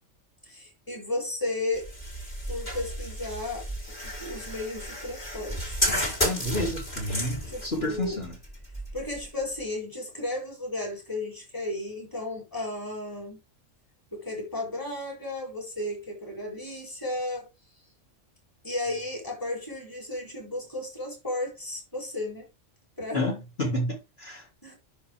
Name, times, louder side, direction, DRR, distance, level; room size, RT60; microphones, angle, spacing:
voice 1, 0.5-1.9 2.5-3.7 4.0-5.8 7.5-8.2 8.9-13.4 14.1-17.5 18.6-22.5 23.0-23.2 24.6-24.7, left 2 dB, 15° left, 4.1 m, -34 dB
sound 1, 1.7-9.6, equal, 35° left, 5.2 m, -32 dB
voice 2, 6.2-8.3 23.1-24.4, left 1 dB, 50° left, 4.4 m, -30 dB
10.0 x 6.3 x 3.7 m
omnidirectional pair, 1.3 m